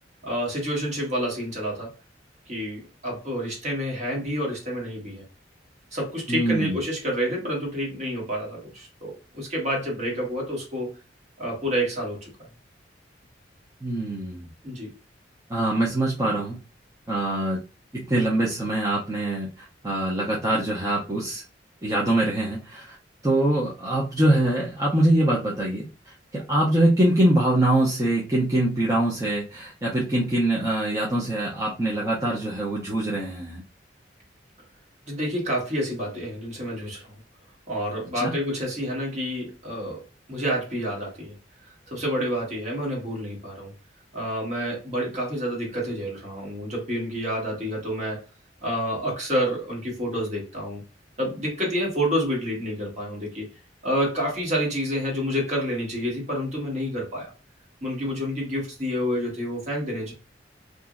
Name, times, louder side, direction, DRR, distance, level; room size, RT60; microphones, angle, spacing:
voice 1, 0.2-2.0 2.5-5.2 5.9-10.9 11.4-12.3 14.6-14.9 35.1-37.1 37.7-41.3 41.9-43.7 44.1-48.2 48.6-50.8 51.2-53.5 53.8-57.3 57.8-60.1, equal, 40° right, -2 dB, 1.3 m, -28 dB
voice 2, 6.3-6.8 13.8-14.5 15.5-16.6 17.1-17.6 17.9-21.4 21.8-23.0 23.2-33.6 38.2-38.3, right 1 dB, 15° right, -5 dB, 0.5 m, -24 dB
2.9 x 2.5 x 2.4 m, 0.32 s
head